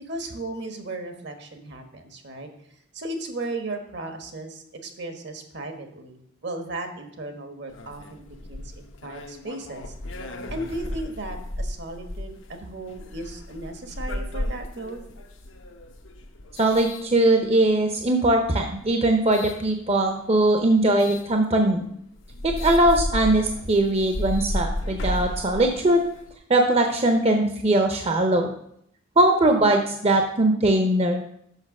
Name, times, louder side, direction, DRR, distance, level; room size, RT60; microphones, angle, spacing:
voice 1, 0.1-2.5 2.9-8.0 8.5-9.9 10.5-15.0, right 2 dB, 60° right, 6 dB, 1.2 m, -35 dB
sound 1, 7.7-17.7 18.4-19.6 21.0-21.3 21.8-21.9 22.2-26.3, left 1 dB, 90° left, 0.9 m, -34 dB
voice 2, 16.6-21.8 22.4-26.0 26.5-28.6 29.2-31.2, right 1 dB, 30° right, 4 dB, 0.7 m, -20 dB
6.5 x 5.6 x 6.4 m, 0.71 s
head